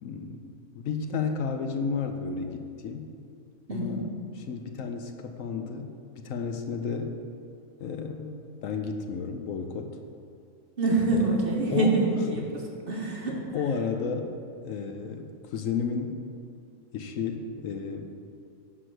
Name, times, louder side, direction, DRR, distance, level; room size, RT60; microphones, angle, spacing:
voice 1, 0.0-3.1 3.7-5.9 6.2-7.2 7.8-10.0 11.1-11.3 11.7-11.9 12.4-12.5 13.5-14.3 14.6-16.2 16.9-18.3, left 5 dB, 70° left, 5 dB, 1.0 m, -32 dB
voice 2, 3.7-4.0 10.8-13.5, right 2 dB, 45° right, -1 dB, 1.2 m, -26 dB
9.9 x 4.8 x 6.4 m, 2.4 s
omnidirectional pair, 1.5 m